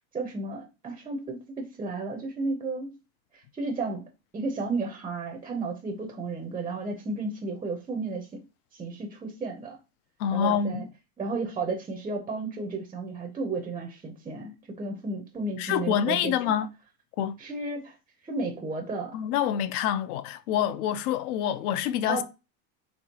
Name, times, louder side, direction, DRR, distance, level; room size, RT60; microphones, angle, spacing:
voice 1, 0.1-3.0 3.6-4.0 4.3-8.4 8.7-9.8 10.3-10.8 11.2-16.5 17.4-18.0 18.2-19.2 22.1-22.2, right 3 dB, 10° right, 0.5 m, -33 dB
voice 2, 10.2-10.9 15.6-16.7 17.2-17.4 19.1-22.2, left 9 dB, 70° left, 0.6 m, -26 dB
4.4 x 3.0 x 2.8 m
supercardioid pair, 145°, 45 cm